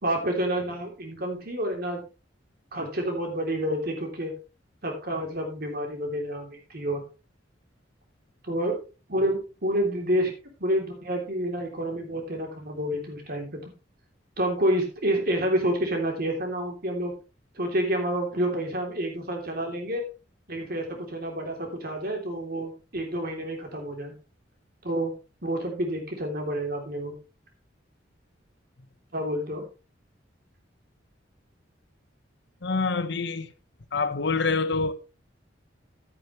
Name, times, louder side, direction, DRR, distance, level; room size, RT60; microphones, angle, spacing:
voice 1, 0.0-2.0 2.7-4.3 4.8-7.0 8.4-8.8 9.1-10.3 10.6-13.6 14.4-17.1 17.5-20.0 20.5-24.1 24.8-25.1 25.4-27.1 29.1-29.6, right 1 dB, 55° right, 3.2 m, -28 dB
voice 2, 32.6-33.5 33.9-34.9, left 4 dB, 65° left, 1.1 m, -26 dB
12.5 x 9.1 x 3.2 m
head